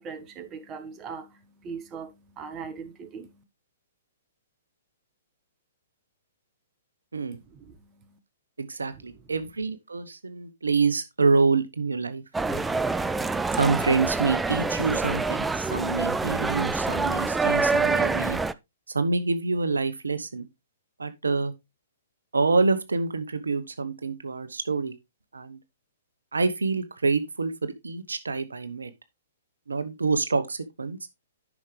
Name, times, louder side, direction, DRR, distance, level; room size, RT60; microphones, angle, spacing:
voice 1, 0.0-3.4 7.5-8.2 8.9-9.0, right 5 dB, 25° right, 1.3 m, -40 dB
voice 2, 8.6-12.6 13.5-18.4 18.9-20.5 21.0-21.5 22.3-24.9 25.3-25.6 26.3-28.9 29.7-31.0, right 4 dB, 80° right, 0.9 m, -27 dB
sound 1, 12.3-18.5, right 3 dB, 10° right, 0.4 m, -26 dB
10.5 x 6.0 x 3.3 m
figure-of-eight pair, 120°, 0 cm